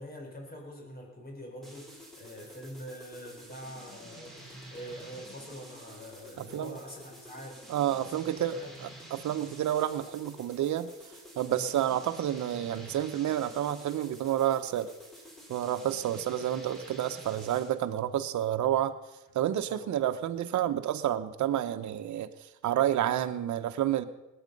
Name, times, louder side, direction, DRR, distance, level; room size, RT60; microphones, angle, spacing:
voice 1, 0.0-7.7 8.0-8.7 9.4-9.6 11.5-11.8 17.1-17.5 19.7-19.9, equal, 30° left, 1 dB, 4.5 m, -45 dB
sound 1, 1.6-17.8, right 1 dB, ahead, 4.0 m, -49 dB
voice 2, 6.4-6.7 7.7-8.6 9.1-10.9 11.4-14.9 15.5-19.0 19.3-22.3 22.6-24.0, right 11 dB, 70° right, 10 dB, 1.0 m, -29 dB
20.0 x 8.9 x 5.4 m, 0.99 s
cardioid pair, 90°, 30 cm